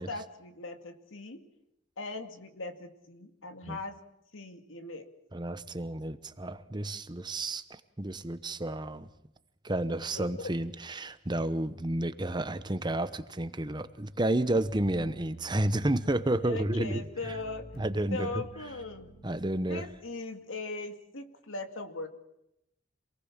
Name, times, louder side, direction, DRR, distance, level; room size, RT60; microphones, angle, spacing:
voice 1, 0.0-1.4 2.0-4.0 4.3-5.1 10.1-10.5 16.4-17.7 18.1-19.1 19.6-22.1, left 3 dB, 85° left, 7 dB, 2.2 m, -39 dB
voice 2, 5.3-9.1 9.6-17.0 17.8-18.4 19.2-19.9, right 1 dB, 20° right, 12 dB, 0.9 m, -31 dB
sound 1, 14.6-19.9, right 2 dB, 50° left, 3.0 m, -49 dB
27.0 x 18.5 x 7.4 m, 0.83 s
head